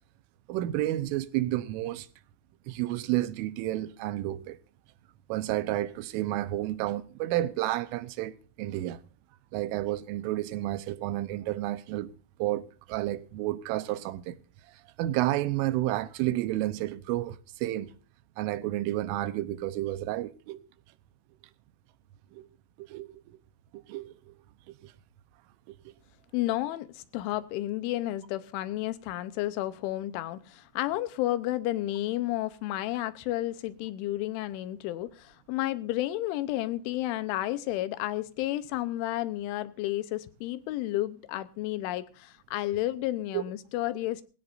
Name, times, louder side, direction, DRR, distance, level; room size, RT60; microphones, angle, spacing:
voice 1, 0.5-2.1 2.7-4.6 5.3-9.0 9.5-12.1 12.4-14.4 14.7-17.9 18.4-20.6 22.3-22.5 22.8-23.4 23.7-24.3 24.8-24.9 43.3-43.4, right 15 dB, 85° right, 3.4 m, -31 dB
voice 2, 26.3-44.2, left 15 dB, 80° left, 3.2 m, -31 dB
20.0 x 17.5 x 2.6 m
omnidirectional pair, 5.7 m